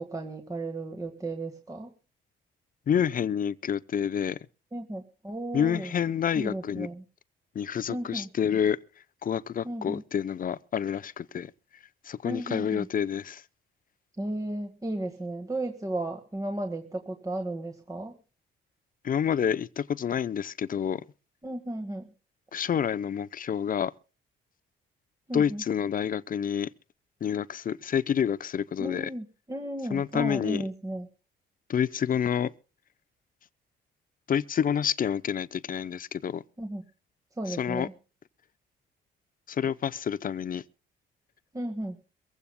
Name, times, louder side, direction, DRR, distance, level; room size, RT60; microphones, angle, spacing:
voice 1, 0.0-1.9 4.7-5.9 6.3-7.0 7.9-8.3 9.6-10.0 12.2-12.9 14.2-18.2 21.4-22.1 25.3-25.6 28.8-31.1 36.6-36.8 37.4-37.9 41.5-42.0, right 1 dB, 15° right, 1.7 m, -34 dB
voice 2, 2.9-4.4 5.5-6.9 7.5-8.8 9.2-11.5 12.0-13.4 19.0-21.0 22.5-23.9 25.3-26.7 27.2-29.1 29.9-30.6 31.7-32.5 34.3-36.4 37.5-37.9 39.5-40.6, left 8 dB, 45° left, 0.7 m, -28 dB
23.5 x 15.5 x 2.3 m
cardioid pair, 90°, 20 cm